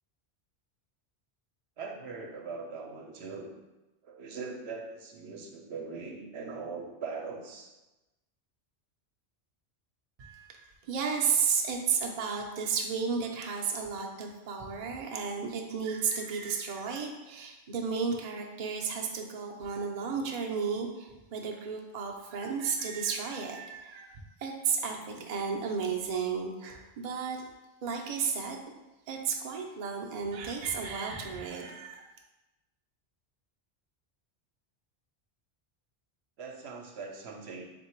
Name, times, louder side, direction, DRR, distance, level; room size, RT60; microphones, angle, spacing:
voice 1, 1.8-3.6 4.0-7.7 36.4-37.7, right 4 dB, 75° right, 2 dB, 0.8 m, -41 dB
voice 2, 10.9-24.1 24.4-27.4 27.8-28.6 29.1-32.0, right 6 dB, 50° right, 1 dB, 0.5 m, -33 dB
3.7 x 2.6 x 4.4 m, 1.0 s
omnidirectional pair, 1.1 m